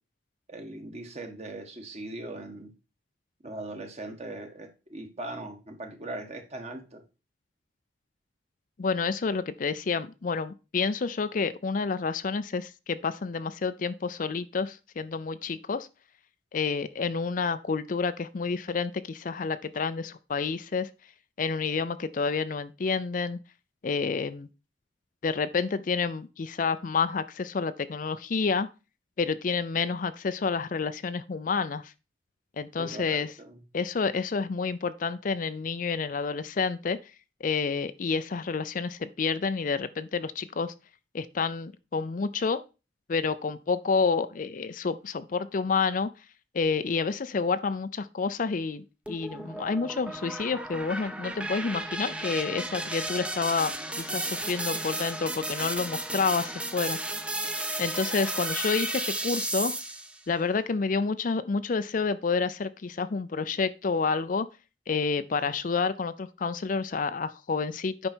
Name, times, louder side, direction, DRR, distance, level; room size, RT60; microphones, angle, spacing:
voice 1, 0.5-2.7 3.4-7.0 32.8-33.6, right 2 dB, 35° right, 1.5 m, -40 dB
voice 2, 8.8-15.9 16.5-20.9 21.4-23.4 23.8-24.5 25.2-28.7 29.2-31.9 32.6-33.3 33.7-37.0 37.4-40.7 41.1-42.6 43.1-46.1 46.5-53.7 54.0-57.0 57.8-59.7 60.3-64.5 64.9-68.1, left 4 dB, 45° left, 0.4 m, -29 dB
sound 1, 49.1-60.2, right 1 dB, 5° right, 0.6 m, -33 dB
8.8 x 5.3 x 4.5 m
head